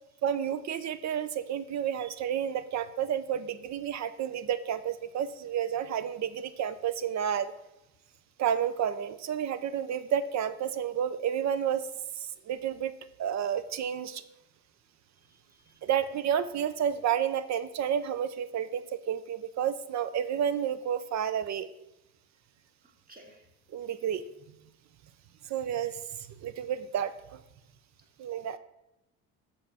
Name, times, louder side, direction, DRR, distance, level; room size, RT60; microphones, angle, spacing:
voice 1, 0.2-7.5 8.4-11.8 12.2-12.9 13.2-14.2 15.8-21.7 23.7-24.2 25.5-26.0 26.4-27.4 28.2-28.6, right 9 dB, 50° right, 13 dB, 0.7 m, -30 dB
voice 2, 15.3-15.7 22.8-23.5, right 1 dB, 25° right, 1 dB, 2.0 m, -56 dB
6.5 x 4.5 x 6.2 m, 0.93 s
supercardioid pair, 75°, 36 cm